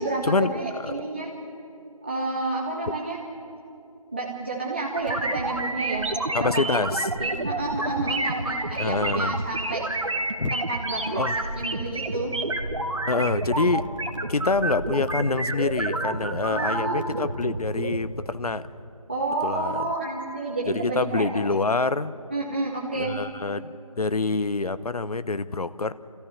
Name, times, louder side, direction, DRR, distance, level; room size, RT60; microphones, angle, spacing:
voice 1, 0.0-1.3 2.0-3.2 4.1-6.5 7.2-9.8 10.5-11.3 11.5-12.3 16.4-17.0 19.1-21.4 22.3-23.1, right 2 dB, 20° right, -4 dB, 1.1 m, -30 dB
sound 1, 4.9-18.0, right 2 dB, 55° right, 1.7 m, -29 dB
voice 2, 6.3-7.1 8.8-9.4 10.4-10.5 11.2-11.3 13.1-13.8 14.3-18.6 19.4-19.7 20.7-22.1 23.0-25.9, left 3 dB, 80° left, 14 dB, 0.9 m, -26 dB
sound 2, 11.5-18.8, right 1 dB, 20° left, 0.5 m, -39 dB
29.5 x 14.5 x 7.2 m, 2.8 s
figure-of-eight pair, 175°, 19 cm